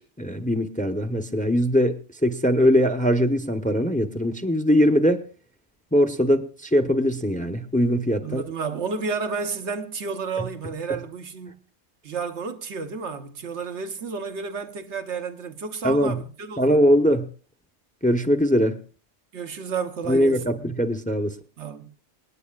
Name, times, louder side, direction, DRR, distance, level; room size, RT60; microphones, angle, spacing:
voice 1, 0.0-5.2 5.9-8.4 15.8-16.2 16.6-17.3 18.0-18.8 20.1-21.3, equal, 10° left, 0.7 m, -21 dB
voice 2, 8.2-11.6 12.0-16.8 19.3-20.6 21.6-21.9, right 5 dB, 80° right, 1.3 m, -31 dB
28.0 x 9.5 x 2.3 m
omnidirectional pair, 1.2 m